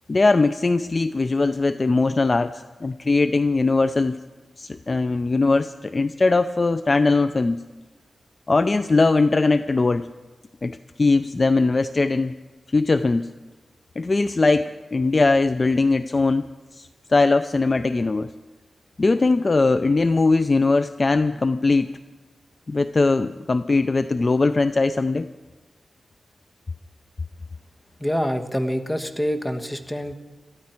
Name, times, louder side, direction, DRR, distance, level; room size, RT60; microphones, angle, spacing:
voice 1, 0.1-4.2 4.6-7.6 8.5-10.1 10.6-12.4 12.7-13.3 14.0-16.5 16.7-18.3 19.0-21.9 22.7-25.3, left 3 dB, 35° left, 11 dB, 0.4 m, -20 dB
voice 2, 28.0-30.1, equal, 10° left, 6 dB, 1.2 m, -26 dB
22.0 x 14.0 x 4.4 m, 1.2 s
wide cardioid pair, 105°, 0 cm